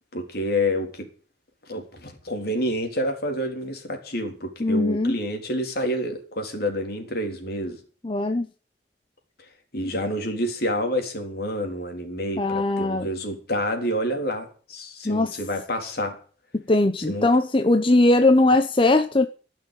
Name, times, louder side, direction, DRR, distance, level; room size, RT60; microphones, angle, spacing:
voice 1, 0.1-1.1 1.7-7.8 9.7-16.2 17.1-17.3, equal, 55° left, 3.7 m, -28 dB
voice 2, 4.6-5.1 8.0-8.5 12.4-13.1 15.0-15.4 16.5-19.3, left 2 dB, 30° left, 0.8 m, -20 dB
17.0 x 6.5 x 9.0 m
head